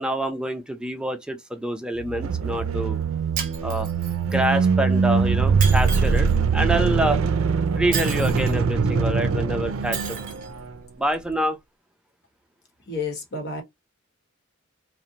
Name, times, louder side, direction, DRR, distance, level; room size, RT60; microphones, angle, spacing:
voice 1, 0.0-3.0 3.6-3.9 4.3-7.2 7.7-10.2 11.0-11.6, right 1 dB, 5° right, 0.4 m, -26 dB
sound 1, 2.0-10.8, right 5 dB, 75° right, 0.4 m, -22 dB
Shatter, 3.4-4.3 5.6-6.3 7.9-8.6 9.9-10.5, right 7 dB, 40° right, 0.7 m, -32 dB
voice 2, 12.9-13.6, left 3 dB, 55° left, 1.0 m, -30 dB
2.6 x 2.1 x 2.8 m
head